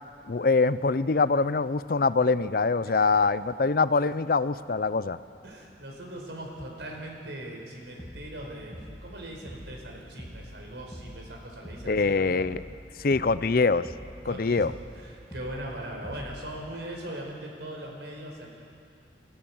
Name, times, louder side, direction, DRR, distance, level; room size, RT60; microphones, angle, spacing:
voice 1, 0.3-5.2 11.9-12.6 13.0-13.9 14.3-14.7, left 4 dB, 55° left, 15 dB, 0.5 m, -24 dB
voice 2, 5.4-12.4 14.2-18.6, right 1 dB, 80° right, 0 dB, 4.7 m, -40 dB
sound 1, 8.0-8.4 8.7-9.1 9.4-9.8 10.2-10.6 10.9-11.3 11.6-12.0 12.4-12.8 13.1-13.5 13.8-14.2 14.6-14.9 15.3-15.7 16.0-16.4, equal, 15° left, 2.0 m, -43 dB
29.0 x 15.0 x 7.2 m, 2.5 s
head